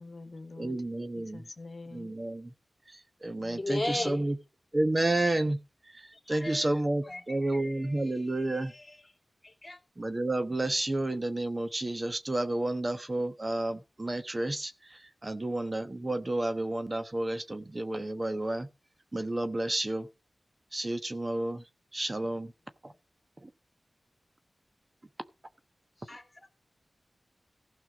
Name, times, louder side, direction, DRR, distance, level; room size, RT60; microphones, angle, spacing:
voice 1, 0.0-0.8 1.1-2.1 3.4-4.3 22.9-23.0, left 3 dB, 55° left, 1.3 m, -47 dB
voice 2, 0.6-1.4 1.9-2.5 2.9-4.4 4.7-5.6 5.8-8.7 10.0-18.7 19.1-20.1 20.7-22.5 22.8-22.9 23.4-23.5, right 2 dB, 35° right, 1.1 m, -31 dB
voice 3, 3.6-4.2 6.1-6.7 7.0-9.0 9.4-9.8 26.0-26.5, left 2 dB, 30° left, 2.8 m, -38 dB
15.5 x 5.8 x 5.1 m
cardioid pair, 55°, 0 cm